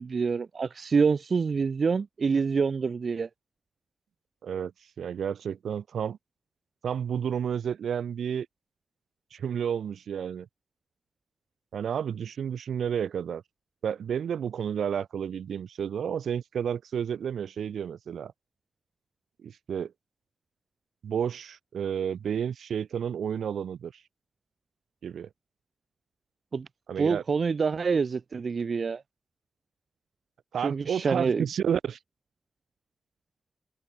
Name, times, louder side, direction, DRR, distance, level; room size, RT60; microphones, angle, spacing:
voice 1, 0.0-3.3 26.5-26.7 27.0-29.0 30.6-31.5, right 5 dB, 65° right, 2.3 m, -26 dB
voice 2, 5.0-6.2 6.8-8.5 9.3-10.5 11.7-13.4 13.8-18.3 19.4-19.9 21.0-23.9 25.0-25.3 26.9-27.2 30.5-32.0, right 8 dB, 85° right, 6.6 m, -31 dB
cardioid pair, 50°, 0 cm